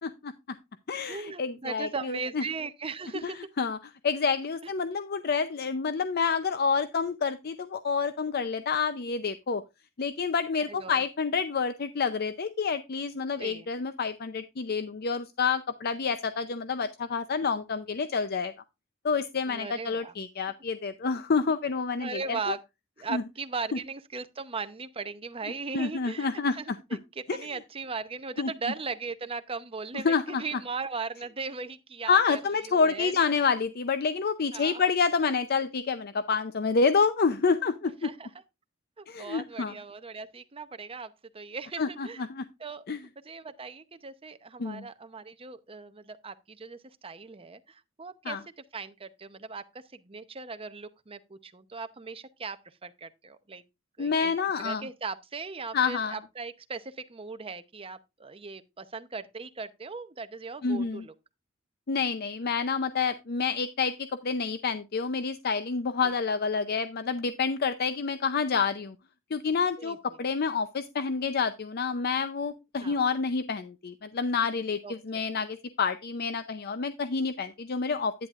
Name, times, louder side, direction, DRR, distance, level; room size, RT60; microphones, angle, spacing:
voice 1, 0.0-0.3 0.9-2.4 3.2-3.8 4.0-9.6 10.0-18.5 19.0-22.5 23.1-23.2 25.7-26.6 27.3-27.5 28.4-28.5 30.0-30.4 32.1-38.1 39.1-39.7 41.8-42.5 42.9-43.0 44.6-44.9 48.2-48.4 54.0-54.9 55.7-56.2 60.6-61.0 61.9-69.0 69.3-78.1, left 5 dB, 50° left, 0.6 m, -28 dB
voice 2, 1.1-3.5 4.6-4.7 10.7-11.0 13.4-13.7 19.5-20.1 21.3-21.4 22.0-22.6 23.0-32.4 32.7-33.2 34.5-34.8 38.0-38.3 39.0-42.2 42.6-42.8 43.2-48.4 48.7-49.6 49.9-53.6 54.0-61.1 66.0-66.1 69.8-70.0 72.8-73.0 74.8-75.2, right 4 dB, 30° right, 0.7 m, -38 dB
10.5 x 9.9 x 2.4 m
head